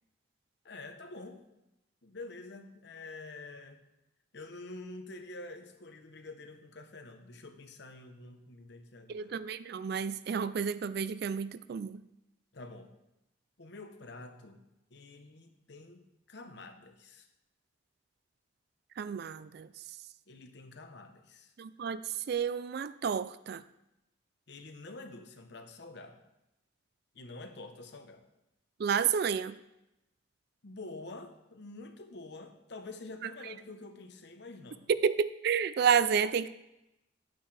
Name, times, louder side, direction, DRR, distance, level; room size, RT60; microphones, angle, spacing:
voice 1, 0.6-1.4 2.0-3.8 4.3-9.4 12.5-12.9 13.6-14.6 14.9-17.3 20.3-21.5 24.5-26.2 27.1-28.2 30.6-34.9, left 2 dB, 60° left, 6 dB, 0.9 m, -47 dB
voice 2, 9.1-12.0 19.0-19.7 21.6-22.0 22.3-23.6 28.8-29.5 35.0-36.5, right 7 dB, 50° right, 15 dB, 0.3 m, -30 dB
10.0 x 8.8 x 3.3 m, 0.90 s
head